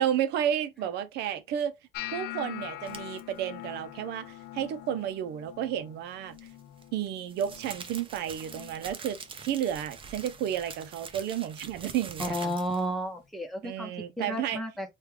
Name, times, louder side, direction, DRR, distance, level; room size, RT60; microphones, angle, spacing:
voice 1, 0.0-1.7 2.1-6.4 6.9-12.5 13.6-14.6, right 10 dB, 80° right, 0.6 m, -32 dB
sound 1, 1.9-8.0 8.3-8.8 9.2-9.7 10.3-10.6 12.3-12.4, left 15 dB, 80° left, 0.5 m, -43 dB
sound 2, 2.9-3.2 6.3-12.9, right 5 dB, 30° right, 0.6 m, -44 dB
voice 2, 12.2-13.9 14.2-14.9, equal, ahead, 0.9 m, -32 dB
3.2 x 2.3 x 3.2 m
cardioid pair, 110°, 17 cm